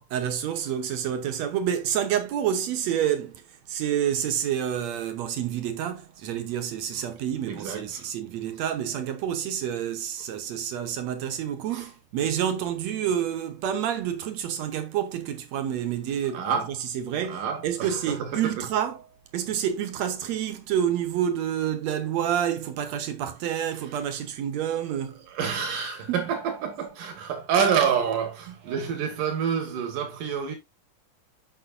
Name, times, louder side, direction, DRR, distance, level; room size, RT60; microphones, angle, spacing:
voice 1, 0.1-19.1 19.3-25.3 26.1-26.3 28.5-28.6, right 9 dB, 70° right, 1.9 m, -28 dB
voice 2, 7.5-8.0 11.7-11.8 16.3-16.7 17.3-18.3 25.3-30.6, right 7 dB, 90° right, 3.4 m, -27 dB
8.3 x 6.2 x 2.6 m
omnidirectional pair, 3.6 m